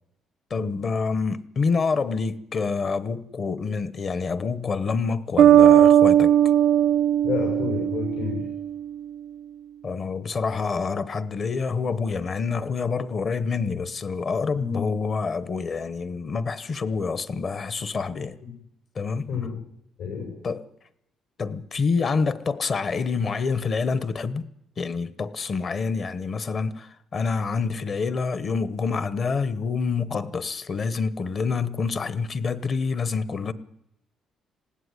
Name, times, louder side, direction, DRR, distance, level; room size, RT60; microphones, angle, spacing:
voice 1, 0.5-6.4 9.8-18.4 18.9-19.3 20.4-20.7 21.4-24.5 24.8-33.5, left 4 dB, 35° left, 0.9 m, -27 dB
Bass guitar, 5.4-8.9, right 10 dB, 80° right, 0.8 m, -18 dB
voice 2, 7.2-8.5 14.5-14.9 18.4-18.5 19.3-19.5 20.0-20.3, left 6 dB, 75° left, 6.5 m, -30 dB
20.0 x 16.0 x 9.7 m
cardioid pair, 165°, 0 cm